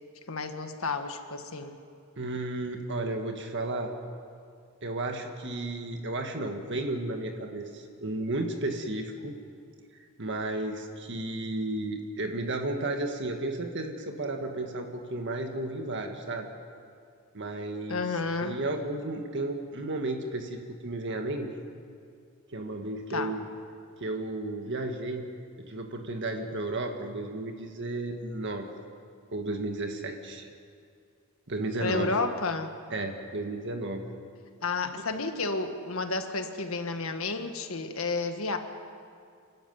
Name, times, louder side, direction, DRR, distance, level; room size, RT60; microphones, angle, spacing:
voice 1, 0.3-1.8 17.9-18.6 23.1-23.3 31.8-32.7 34.6-38.6, left 3 dB, 65° left, 7 dB, 1.7 m, -31 dB
voice 2, 2.2-3.9 4.8-9.4 9.9-16.5 17.3-21.5 22.5-23.4 24.0-25.2 25.6-28.7 29.3-30.5 31.5-32.1 32.9-34.0, right 2 dB, 55° right, 4 dB, 1.7 m, -33 dB
28.0 x 12.0 x 9.3 m, 2.3 s
head